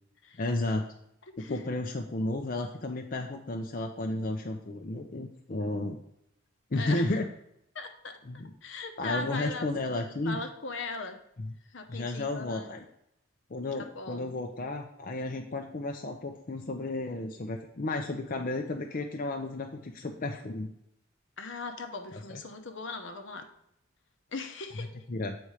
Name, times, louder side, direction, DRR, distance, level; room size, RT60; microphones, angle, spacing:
voice 1, 0.4-0.9 1.4-6.0 6.7-7.3 8.3-8.5 9.0-10.4 11.4-11.5 11.9-12.8 13.5-20.7 22.1-22.4 25.1-25.4, left 2 dB, 45° left, 3 dB, 0.6 m, -33 dB
voice 2, 1.3-1.6 6.8-7.2 7.7-9.7 10.2-11.2 11.7-12.7 13.8-14.4 21.4-23.5 24.3-24.9, left 3 dB, 65° left, 6 dB, 0.9 m, -39 dB
8.0 x 4.3 x 4.9 m, 0.77 s
head